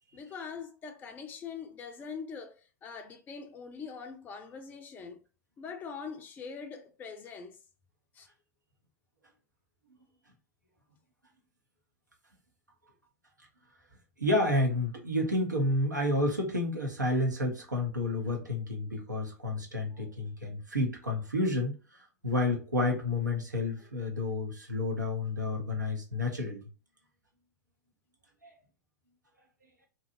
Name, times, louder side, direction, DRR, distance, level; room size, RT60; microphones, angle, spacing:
voice 1, 0.1-5.2 5.6-7.6 8.1-8.3 23.8-23.9, left 5 dB, 20° left, 0.3 m, -43 dB
voice 2, 14.2-21.7 22.2-26.6 28.4-28.5, left 2 dB, 90° right, 1.0 m, -30 dB
2.8 x 2.4 x 2.6 m
figure-of-eight pair, 105°, 9 cm